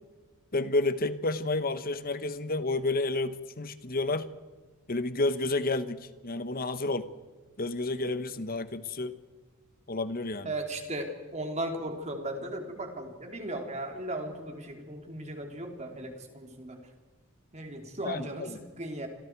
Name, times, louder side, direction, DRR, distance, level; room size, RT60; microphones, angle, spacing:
voice 1, 0.5-4.3 4.9-7.1 7.6-9.2 9.9-10.5 18.0-18.6, left 2 dB, 40° left, 12 dB, 1.2 m, -30 dB
voice 2, 5.4-5.9 10.4-16.9 17.5-19.1, right 1 dB, 30° right, 3 dB, 3.2 m, -37 dB
29.5 x 26.0 x 4.7 m, 1.3 s
head